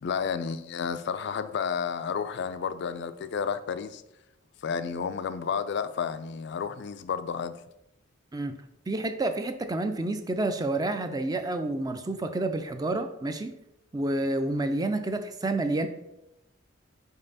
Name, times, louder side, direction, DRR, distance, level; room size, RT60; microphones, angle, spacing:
voice 1, 0.0-4.0 4.6-7.6, left 6 dB, 55° left, 0.3 m, -31 dB
voice 2, 8.9-13.5 13.9-15.9, right 2 dB, 20° right, 0.4 m, -29 dB
5.4 x 4.9 x 4.0 m
head